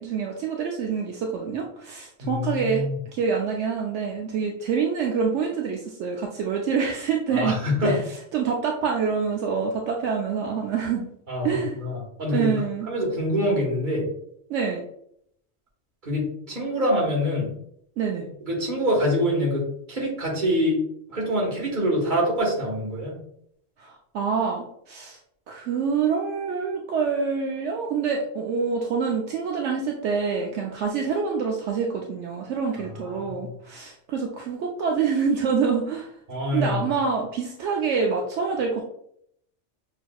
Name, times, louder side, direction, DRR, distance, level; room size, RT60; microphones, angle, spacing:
voice 1, 0.0-2.8 3.1-8.0 8.3-11.1 11.4-11.8 12.3-12.9 14.5-14.8 18.0-18.3 23.8-25.2 25.5-36.1 36.5-38.8, right 5 dB, 75° right, 0 dB, 0.9 m, -26 dB
voice 2, 2.2-2.9 7.3-8.0 11.3-12.6 12.9-14.1 16.0-17.5 18.4-20.8 21.1-23.1 33.1-33.2 36.3-36.8, equal, 40° right, -3 dB, 1.5 m, -25 dB
6.1 x 2.8 x 2.3 m, 0.72 s
omnidirectional pair, 1.2 m